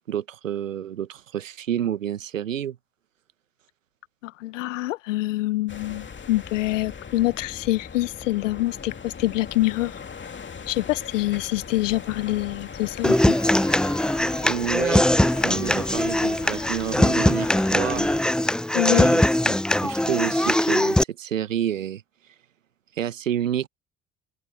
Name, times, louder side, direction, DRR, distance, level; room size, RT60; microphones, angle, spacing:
voice 1, 0.1-2.8 14.4-18.2 18.8-19.2 19.8-22.0 23.0-23.7, right 10 dB, 90° right, 1.0 m, -29 dB
voice 2, 4.2-9.9 10.7-13.4 18.7-19.1 19.5-19.6, left 18 dB, 80° left, 0.7 m, -25 dB
sound 1, 5.7-18.2, left 6 dB, 30° left, 2.5 m, -39 dB
Human voice / Acoustic guitar, 13.0-21.0, left 1 dB, ahead, 0.5 m, -21 dB
open air
hypercardioid pair, 55°, 38 cm